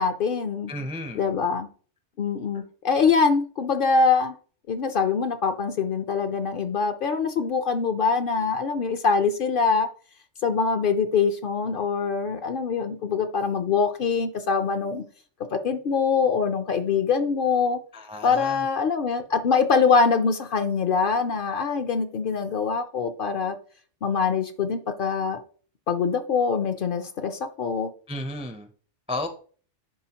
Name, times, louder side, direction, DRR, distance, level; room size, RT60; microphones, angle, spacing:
voice 1, 0.0-0.7 1.1-1.7 2.2-4.3 4.7-9.9 10.4-15.0 15.5-17.8 18.2-23.6 24.0-25.4 25.9-27.9, left 5 dB, 55° left, 8 dB, 0.6 m, -24 dB
voice 2, 0.7-1.3 17.9-18.7 28.1-28.7 29.1-29.3, left 1 dB, 10° right, 7 dB, 0.3 m, -33 dB
10.5 x 3.7 x 2.9 m, 0.42 s
omnidirectional pair, 1.2 m